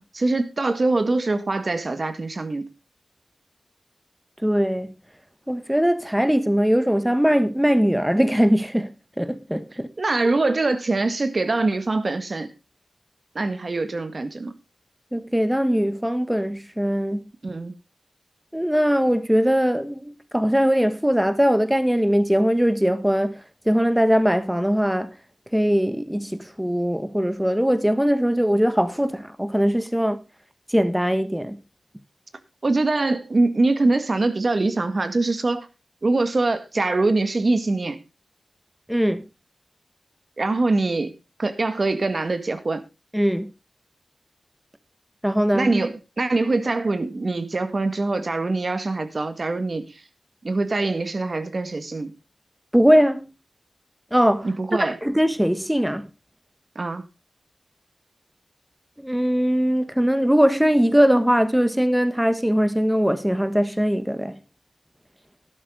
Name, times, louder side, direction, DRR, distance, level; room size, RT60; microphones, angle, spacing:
voice 1, 0.0-2.7 10.0-12.5 13.4-14.5 17.4-17.7 32.6-35.7 36.0-38.0 40.4-41.1 41.4-42.8 45.5-50.0 50.4-52.1 54.4-55.0 56.8-57.1, right 2 dB, 50° right, 1.8 m, -23 dB
voice 2, 4.4-4.9 5.5-9.9 15.1-17.2 18.5-23.4 23.6-25.1 25.5-30.2 30.7-31.6 38.9-39.2 43.1-43.5 45.2-45.7 52.7-53.3 54.1-54.5 54.8-56.1 59.0-64.3, equal, 5° right, 1.3 m, -21 dB
12.0 x 11.5 x 3.8 m
cardioid pair, 55°, 0 cm